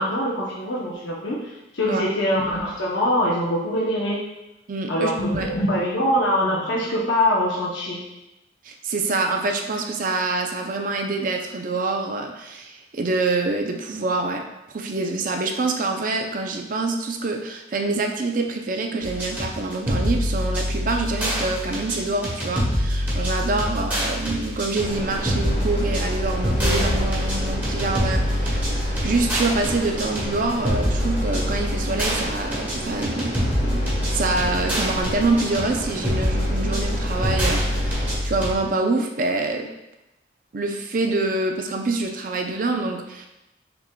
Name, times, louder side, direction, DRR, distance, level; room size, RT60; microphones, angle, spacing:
voice 1, 0.0-4.2 4.9-8.0, equal, 85° left, -5 dB, 0.8 m, -23 dB
voice 2, 4.7-5.5 8.6-14.4 14.7-39.7 40.5-43.3, right 3 dB, 45° right, 4 dB, 0.4 m, -26 dB
sound 1, 19.0-38.5, equal, 10° right, 1.2 m, -25 dB
sound 2, 24.8-38.2, right 1 dB, 50° left, 1.2 m, -32 dB
5.7 x 3.7 x 2.2 m, 0.94 s
head